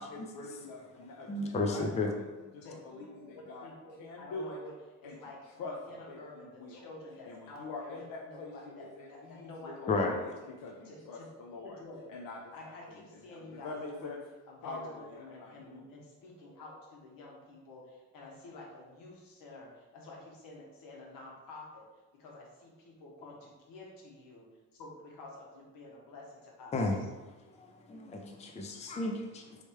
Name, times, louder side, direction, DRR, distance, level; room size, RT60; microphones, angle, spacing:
voice 1, 0.0-2.2 2.5-3.7 4.0-4.6 5.0-5.2 5.6-5.7 6.1-6.9 7.2-11.8 12.1-13.0 13.3-14.2 14.6-15.8, left 3 dB, 70° left, -2 dB, 0.6 m, -45 dB
voice 2, 1.3-2.1 9.9-10.1 26.7-27.0 27.5-29.6, left 3 dB, 20° left, 2 dB, 0.4 m, -33 dB
voice 3, 2.6-10.5 10.8-11.3 11.6-12.1 12.5-21.8 22.1-24.5 24.8-27.1, left 2 dB, 90° left, -2 dB, 1.2 m, -50 dB
3.2 x 3.2 x 4.4 m, 1.2 s
cardioid pair, 135°, 33 cm